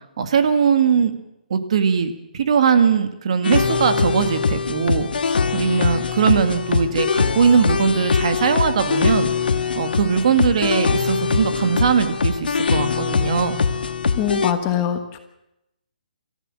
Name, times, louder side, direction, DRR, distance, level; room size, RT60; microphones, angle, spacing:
voice 1, 0.2-1.2 1.5-9.3 9.8-13.6, right 6 dB, 40° right, 9 dB, 1.8 m, -20 dB
sound 1, 3.4-14.5, left 5 dB, 85° left, 1.6 m, -22 dB
voice 2, 14.1-15.2, left 10 dB, 15° left, 7 dB, 1.2 m, -23 dB
28.0 x 14.0 x 7.6 m, 0.87 s
hypercardioid pair, 175°, 5 cm